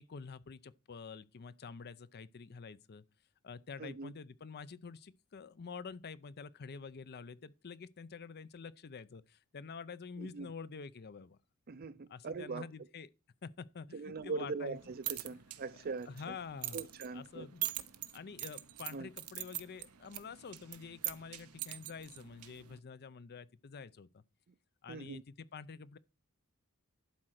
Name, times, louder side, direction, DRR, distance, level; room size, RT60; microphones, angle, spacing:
voice 1, 0.0-3.0 3.4-11.4 12.1-13.1 13.4-14.8 16.0-16.9 17.1-17.7 18.1-24.2 24.8-26.0, left 5 dB, 50° left, 0.5 m, -48 dB
voice 2, 3.8-4.1 10.2-10.5 11.7-12.7 13.9-16.4 16.7-17.5 18.9-19.1 24.9-25.2, right 4 dB, 45° right, 0.5 m, -41 dB
sound 1, 14.8-22.8, right 15 dB, 90° right, 0.9 m, -44 dB
11.5 x 4.4 x 6.4 m
head